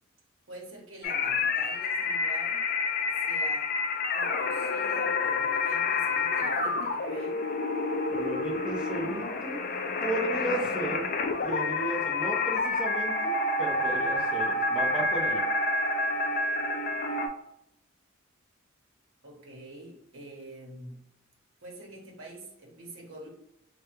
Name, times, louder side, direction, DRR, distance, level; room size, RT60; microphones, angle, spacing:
voice 1, 0.5-2.6 3.2-3.8 4.1-7.4 19.2-21.1 21.6-23.3, right 1 dB, 75° right, -1 dB, 0.9 m, -45 dB
sound 1, 1.0-17.3, left 3 dB, 45° left, 0.3 m, -28 dB
voice 2, 8.1-9.6 10.0-11.1 11.4-15.5, right 2 dB, 5° right, -4 dB, 0.7 m, -34 dB
3.4 x 2.2 x 2.9 m, 0.79 s
head